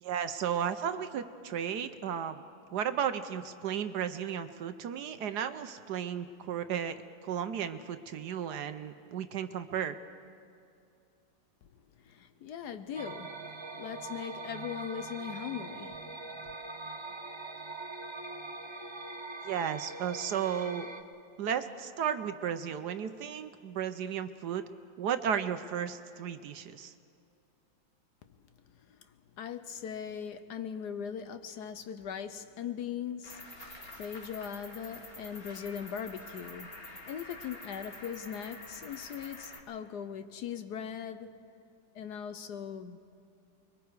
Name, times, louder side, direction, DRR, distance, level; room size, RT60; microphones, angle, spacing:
voice 1, 0.0-2.4 2.7-7.0 7.2-10.0 19.4-20.9 21.4-24.6 25.0-26.9, right 8 dB, 65° right, 1.2 m, -34 dB
voice 2, 12.0-16.0 16.4-16.5 28.7-29.0 29.4-33.4 33.9-41.3 41.9-43.0, left 8 dB, 65° left, 1.2 m, -40 dB
sound 1, 12.9-21.0, right 3 dB, 25° right, 0.6 m, -42 dB
Cricket, 33.2-39.6, left 2 dB, 30° left, 2.2 m, -47 dB
29.0 x 22.0 x 4.7 m
omnidirectional pair, 2.1 m